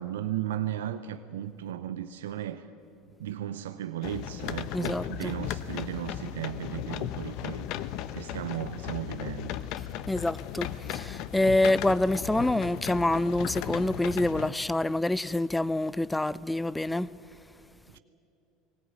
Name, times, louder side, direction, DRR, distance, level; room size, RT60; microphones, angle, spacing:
voice 1, 0.0-2.6 3.2-7.6 8.1-9.6 17.9-18.0, right 11 dB, 90° right, 0.6 m, -35 dB
sound 1, 4.0-14.5, left 11 dB, 65° left, 0.8 m, -36 dB
voice 2, 4.7-5.3 10.1-17.1, left 1 dB, 10° left, 0.5 m, -27 dB
19.5 x 17.5 x 9.3 m
hypercardioid pair, 90°, 0 cm